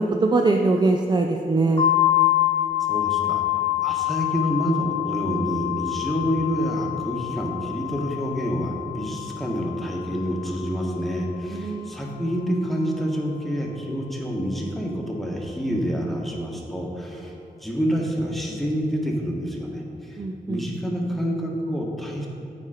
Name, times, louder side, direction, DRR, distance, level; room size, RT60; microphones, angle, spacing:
voice 1, 0.0-1.9 11.5-11.9 20.2-20.6, right 3 dB, 30° right, 2 dB, 0.4 m, -22 dB
sound 1, 1.8-11.4, left 15 dB, 35° left, 0.8 m, -26 dB
voice 2, 2.9-3.4 3.8-22.3, equal, ahead, -1 dB, 1.2 m, -27 dB
8.3 x 4.8 x 4.9 m, 2.7 s
wide cardioid pair, 95°, 15 cm